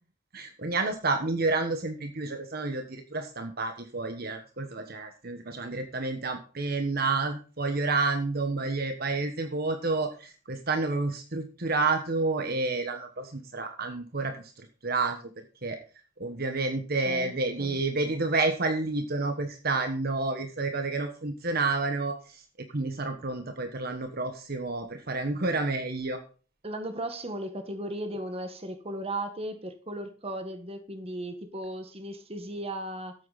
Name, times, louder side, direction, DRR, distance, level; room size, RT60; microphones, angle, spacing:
voice 1, 0.3-15.2 15.6-15.8 16.2-22.4 22.7-26.2, right 3 dB, 50° right, 1.3 m, -30 dB
voice 2, 26.6-33.1, right 1 dB, 30° right, 1.6 m, -36 dB
13.0 x 8.4 x 4.2 m
head